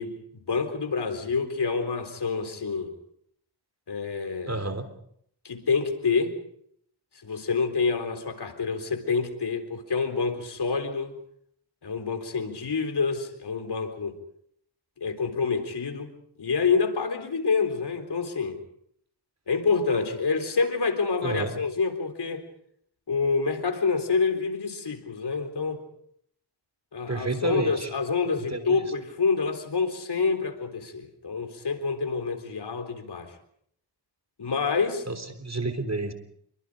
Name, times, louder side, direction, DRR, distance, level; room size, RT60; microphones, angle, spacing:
voice 1, 0.0-2.9 3.9-4.6 5.4-6.4 7.2-11.1 11.8-14.2 15.0-16.1 16.4-18.6 19.5-22.4 23.1-25.8 26.9-33.3 34.4-35.1, left 5 dB, 65° left, 7 dB, 4.0 m, -27 dB
voice 2, 4.5-4.9 21.2-21.5 27.1-27.9 28.5-28.8 35.1-36.1, right 2 dB, 40° right, 8 dB, 3.5 m, -30 dB
27.5 x 23.5 x 5.1 m, 0.67 s
cardioid pair, 65°, 42 cm